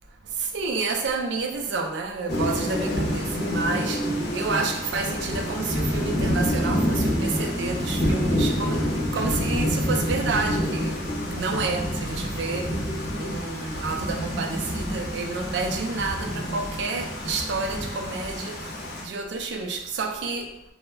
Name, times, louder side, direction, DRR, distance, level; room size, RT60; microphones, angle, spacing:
voice 1, 0.2-12.9 13.1-20.5, right 4 dB, 75° right, 0.4 m, -30 dB
Thunder / Rain, 2.3-19.0, equal, 60° left, 0.7 m, -27 dB
sound 1, 3.9-5.2 6.4-8.6, right 2 dB, 10° left, 0.7 m, -36 dB
2.2 x 2.1 x 3.2 m
head